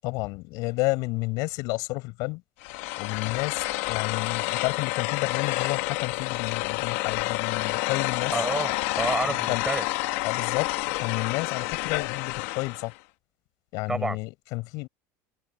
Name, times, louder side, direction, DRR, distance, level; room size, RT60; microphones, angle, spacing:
voice 1, 0.0-2.4 3.0-8.3 9.3-9.6 10.2-12.9 13.7-14.9, left 24 dB, 60° left, 7.6 m, -31 dB
sound 1, 2.6-12.9, left 20 dB, 75° left, 1.4 m, -29 dB
voice 2, 8.3-9.9 13.9-14.2, right 2 dB, 10° right, 7.0 m, -29 dB
cardioid pair, 160°, 7 cm